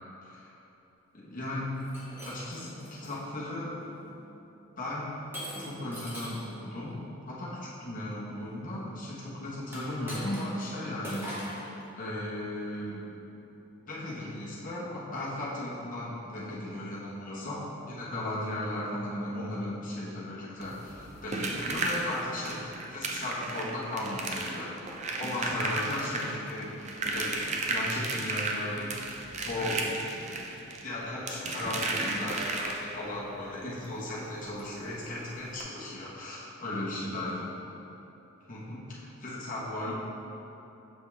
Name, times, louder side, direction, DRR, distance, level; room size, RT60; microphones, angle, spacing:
voice 1, 1.1-1.7 2.2-3.8 4.8-5.1 5.6-7.0 7.3-11.6 12.0-13.1 13.9-29.9 30.8-37.5 38.5-39.9, left 1 dB, 40° left, -7 dB, 1.1 m, -36 dB
Shatter, 1.8-3.2 3.8-4.1 5.3-6.5 9.6-10.7 11.0-11.7, equal, 10° right, 1.0 m, -41 dB
sound 1, 20.6-33.1 34.6-34.7 35.0-35.1 35.5-35.6, right 2 dB, 30° right, 0.5 m, -34 dB
6.6 x 5.3 x 3.4 m, 3.0 s
head